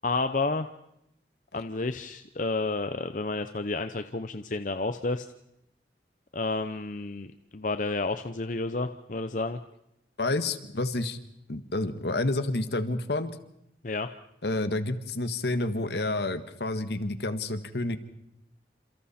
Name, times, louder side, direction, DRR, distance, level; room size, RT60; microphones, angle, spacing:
voice 1, 0.0-0.7 1.5-5.3 6.3-7.3 7.5-9.6 13.8-14.1, left 3 dB, 45° left, 9 dB, 0.7 m, -30 dB
voice 2, 10.2-11.2 11.5-13.4 14.4-18.0, left 2 dB, 70° left, 10 dB, 1.5 m, -29 dB
29.0 x 27.0 x 4.3 m, 0.81 s
head